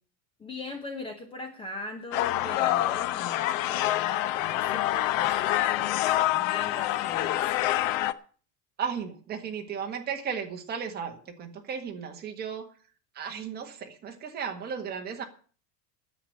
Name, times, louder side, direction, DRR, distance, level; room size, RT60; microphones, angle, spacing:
voice 1, 0.4-7.5, left 2 dB, 10° left, 5 dB, 0.9 m, -41 dB
sound 1, 2.1-8.1, left 14 dB, 60° left, 0.9 m, -26 dB
voice 2, 8.8-12.7 13.1-15.2, right 7 dB, 20° right, 3 dB, 1.7 m, -35 dB
10.0 x 8.0 x 9.5 m, 0.42 s
supercardioid pair, 175°, 45 cm